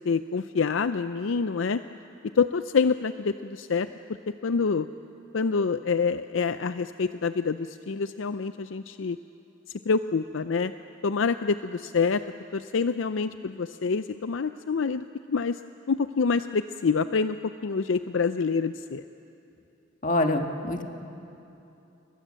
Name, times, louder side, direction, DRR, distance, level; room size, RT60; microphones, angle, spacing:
voice 1, 0.0-1.8 2.2-3.9 4.4-4.9 5.3-9.2 9.8-10.7 11.0-12.2 12.5-15.6 15.9-17.4 17.6-19.0, left 5 dB, 70° left, 11 dB, 0.5 m, -26 dB
voice 2, 20.0-20.8, left 2 dB, 40° left, 4 dB, 1.7 m, -25 dB
29.0 x 23.0 x 7.5 m, 2.9 s
head